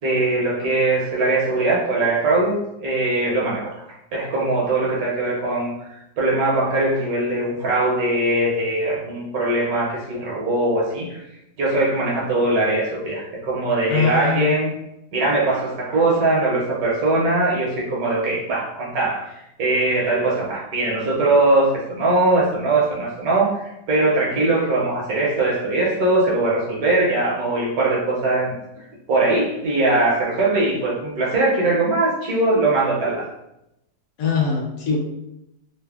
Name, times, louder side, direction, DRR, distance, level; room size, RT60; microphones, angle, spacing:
voice 1, 0.0-3.7 4.1-5.7 6.2-11.2 11.6-14.7 15.1-19.3 19.6-28.5 29.1-33.3, right 2 dB, 65° right, -4 dB, 1.1 m, -21 dB
voice 2, 13.9-14.5 34.2-35.0, left 5 dB, 65° left, -2 dB, 0.9 m, -22 dB
3.2 x 2.0 x 2.3 m, 0.84 s
omnidirectional pair, 1.9 m